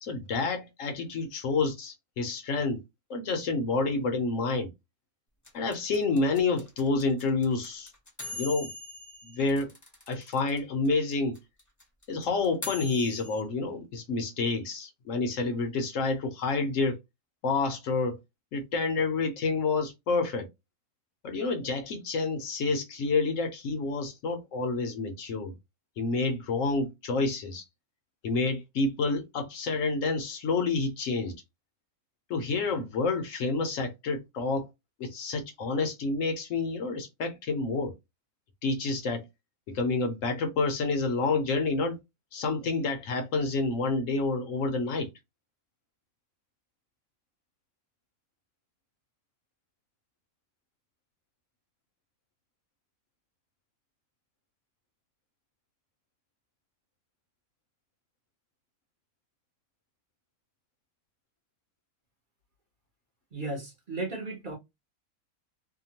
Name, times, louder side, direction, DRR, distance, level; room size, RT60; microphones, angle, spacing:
voice 1, 0.0-2.8 3.1-4.7 5.5-7.9 8.3-8.7 9.2-9.7 10.1-11.4 12.1-17.0 17.4-18.2 18.5-20.5 21.2-25.5 26.0-27.6 28.2-31.3 32.3-34.7 35.0-37.9 38.6-39.2 39.7-42.0 42.3-45.1, left 3 dB, 70° left, 1.0 m, -29 dB
sound 1, 5.4-10.6 10.8-10.9 11.1-13.4, left 2 dB, 15° left, 0.6 m, -41 dB
voice 2, 63.3-64.6, right 2 dB, 40° right, 0.9 m, -35 dB
2.8 x 2.2 x 2.7 m
omnidirectional pair, 1.5 m